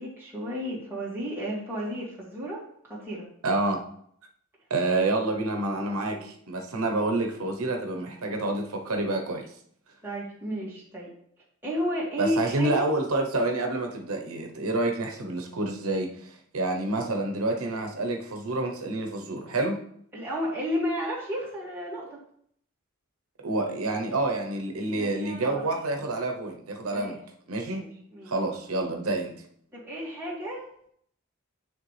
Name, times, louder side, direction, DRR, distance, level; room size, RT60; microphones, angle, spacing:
voice 1, 0.0-3.3 6.1-6.2 10.0-11.1 11.6-12.8 20.1-22.2 24.9-25.6 26.9-27.2 27.6-28.3 29.7-30.6, equal, 10° right, -7 dB, 2.1 m, -33 dB
voice 2, 3.4-3.8 4.7-9.5 12.2-19.8 23.4-27.2 27.5-27.8 28.3-29.3, right 2 dB, 85° right, 3 dB, 0.9 m, -28 dB
9.4 x 3.4 x 3.3 m, 0.67 s
head